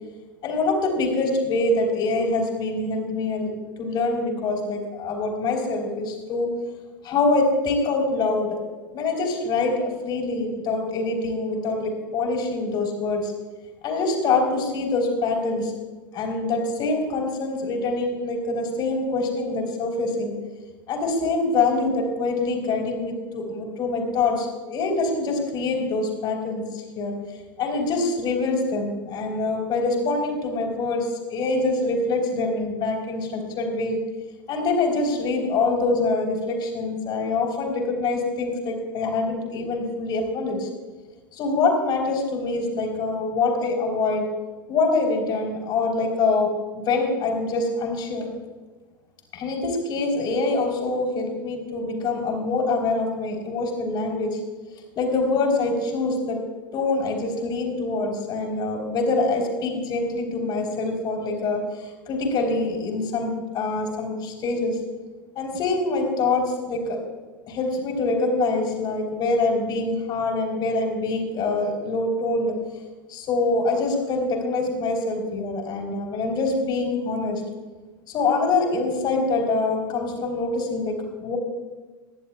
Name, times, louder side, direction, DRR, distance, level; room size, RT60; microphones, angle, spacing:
voice 1, 0.4-3.5 3.8-6.5 7.0-8.6 8.9-13.3 13.8-15.7 16.1-20.3 20.9-27.1 27.6-34.0 34.5-40.7 41.3-44.3 44.7-48.3 49.3-54.4 55.0-56.4 56.7-64.8 65.4-67.0 67.5-72.6 73.1-77.4 78.1-81.4, left 3 dB, 40° left, 2 dB, 3.8 m, -25 dB
24.5 x 11.0 x 2.3 m, 1.3 s
figure-of-eight pair, 80°, 11 cm